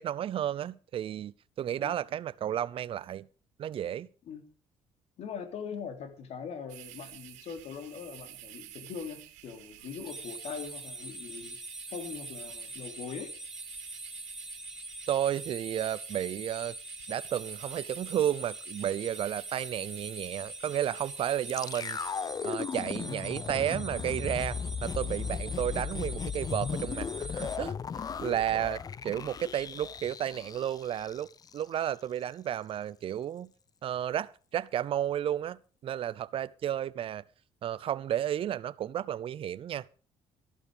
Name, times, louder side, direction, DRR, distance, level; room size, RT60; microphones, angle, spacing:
voice 1, 0.0-3.3 3.6-4.1 15.1-16.8 17.1-22.0 22.4-27.8 28.2-31.3 31.5-33.5 33.8-37.2 37.6-39.9, right 10 dB, 50° right, 0.6 m, -32 dB
voice 2, 5.2-11.6 11.9-13.3, left 6 dB, 65° left, 3.2 m, -41 dB
sound 1, 6.7-22.1, right 14 dB, 85° right, 2.1 m, -49 dB
sound 2, 10.1-27.6, right 1 dB, 5° right, 1.5 m, -44 dB
sound 3, 21.5-31.6 31.9-32.0, left 6 dB, 35° left, 0.6 m, -36 dB
13.0 x 11.5 x 5.0 m
cardioid pair, 95°, 12 cm